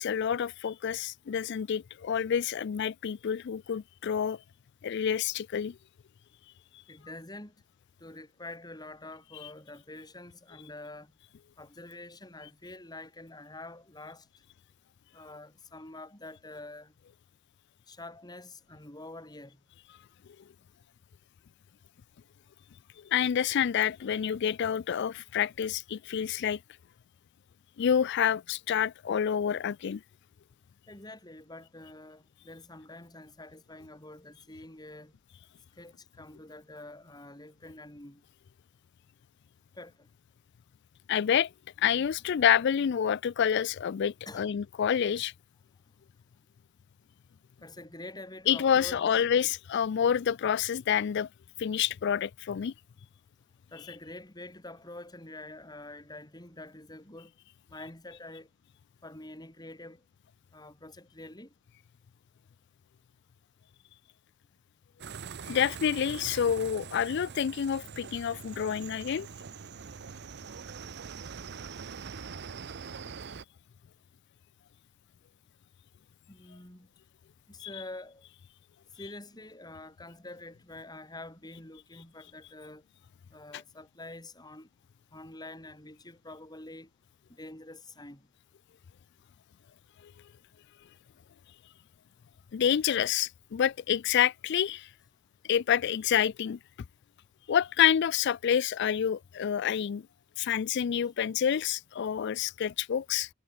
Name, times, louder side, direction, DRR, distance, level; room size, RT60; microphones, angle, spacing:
voice 1, 0.0-4.4 4.8-5.8 23.0-26.6 27.8-30.0 41.1-41.5 41.8-45.3 48.5-51.3 51.6-52.7 65.5-69.3 77.6-77.7 92.5-94.9 95.4-96.6 97.5-100.1 100.4-103.3, left 8 dB, 55° left, 0.3 m, -28 dB
voice 2, 6.9-7.5 8.0-11.1 11.6-14.3 15.1-16.9 17.9-19.6 30.9-35.2 35.8-38.2 39.7-40.1 44.2-44.5 47.6-49.2 53.7-57.3 57.7-58.5 59.0-60.0 60.5-61.5 76.3-76.9 77.5-78.2 79.0-82.8 83.3-84.7 85.1-86.9 87.3-88.3, left 2 dB, 20° left, 4.8 m, -46 dB
sound 1, 65.0-73.4, right 6 dB, 55° right, 0.7 m, -43 dB
head